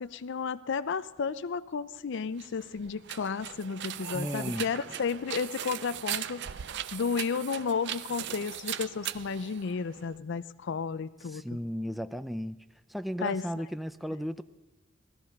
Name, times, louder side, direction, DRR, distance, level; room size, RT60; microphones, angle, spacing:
voice 1, 0.0-6.4 6.9-11.4 13.2-13.5, left 5 dB, 60° left, 16 dB, 0.5 m, -32 dB
sound 1, 2.3-10.2, right 11 dB, 60° right, 0.5 m, -39 dB
voice 2, 4.1-4.7 11.3-12.6 12.9-14.4, equal, ahead, 11 dB, 0.4 m, -35 dB
18.0 x 13.5 x 5.3 m, 1.1 s
head